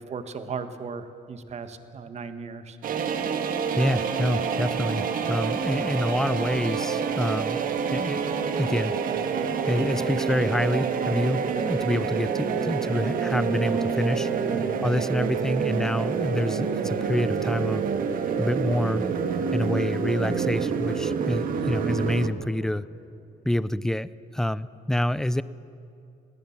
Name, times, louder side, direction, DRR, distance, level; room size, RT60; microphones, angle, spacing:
voice 1, 0.0-2.8 14.5-14.8, right 5 dB, 40° right, 9 dB, 1.4 m, -36 dB
sound 1, 2.8-22.3, right 6 dB, 55° right, 1.6 m, -27 dB
voice 2, 3.7-8.3 8.6-8.9 9.7-14.3 14.8-17.8 18.4-19.0 19.5-22.9 23.4-25.4, left 1 dB, 5° left, 17 dB, 0.5 m, -27 dB
21.5 x 17.0 x 7.3 m, 2.6 s
cardioid pair, 110°, 17 cm